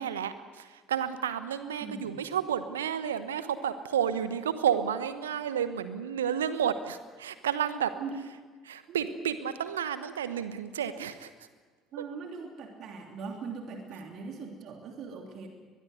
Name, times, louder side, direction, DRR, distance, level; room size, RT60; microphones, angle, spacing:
voice 1, 0.0-7.9 8.7-11.3, right 8 dB, 75° right, 13 dB, 1.0 m, -31 dB
voice 2, 1.8-2.2 8.0-8.2 8.9-9.4 11.9-15.5, right 5 dB, 50° right, 3 dB, 3.1 m, -41 dB
23.0 x 21.5 x 7.9 m, 1.4 s
figure-of-eight pair, 55°, 0 cm